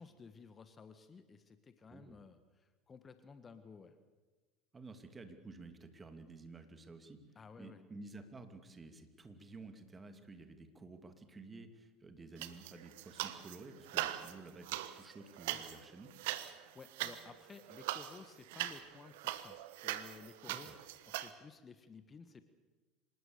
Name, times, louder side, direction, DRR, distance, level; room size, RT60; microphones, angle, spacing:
voice 1, 0.0-4.0 7.3-7.8 15.5-15.6 16.7-20.7 21.1-22.4, left 5 dB, 25° left, 10 dB, 1.5 m, -55 dB
voice 2, 1.9-2.2 4.7-7.2 7.6-16.1 20.5-20.7, right 3 dB, 20° right, 7 dB, 2.7 m, -52 dB
sound 1, 12.4-13.6 13.8-21.3, right 14 dB, 60° right, 1.2 m, -41 dB
26.0 x 19.5 x 6.9 m, 1.2 s
figure-of-eight pair, 70°, 0 cm